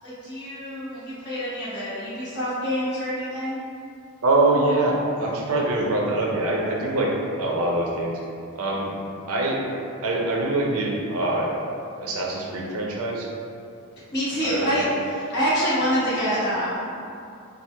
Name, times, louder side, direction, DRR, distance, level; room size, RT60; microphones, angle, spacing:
voice 1, 0.0-3.6 14.1-16.9, equal, 50° left, -11 dB, 1.4 m, -26 dB
voice 2, 4.2-8.2 8.6-8.9 9.3-9.6 10.0-11.6 12.0-13.3 14.4-14.8, right 2 dB, 75° right, -2 dB, 0.6 m, -24 dB
4.3 x 2.0 x 3.3 m, 2.6 s
head